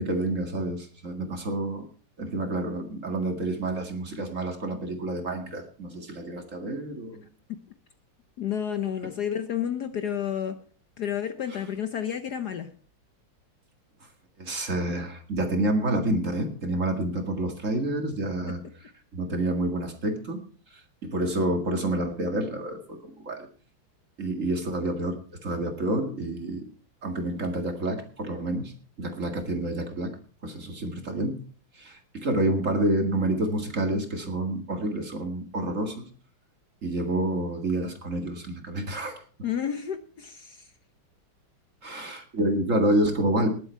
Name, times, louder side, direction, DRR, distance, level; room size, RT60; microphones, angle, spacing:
voice 1, 0.0-1.8 2.2-7.2 14.4-18.6 19.1-20.4 20.7-23.5 24.2-25.2 25.4-26.6 27.0-28.7 29.0-30.1 30.4-31.4 31.8-36.1 36.8-39.2 41.8-43.5, right 1 dB, 40° right, 4 dB, 2.3 m, -28 dB
voice 2, 8.4-10.6 11.0-12.7 39.4-40.7, left 9 dB, 60° left, 8 dB, 1.3 m, -30 dB
19.5 x 7.9 x 4.5 m, 0.42 s
omnidirectional pair, 2.3 m